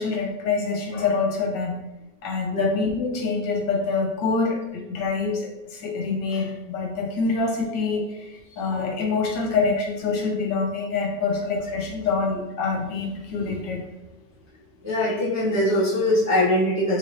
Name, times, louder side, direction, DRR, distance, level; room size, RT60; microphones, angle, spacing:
voice 1, 0.0-1.8 2.2-13.8, left 4 dB, 90° left, 0 dB, 1.5 m, -26 dB
voice 2, 14.8-17.0, left 1 dB, 20° right, -9 dB, 0.4 m, -22 dB
3.6 x 3.0 x 2.8 m, 0.95 s
omnidirectional pair, 1.9 m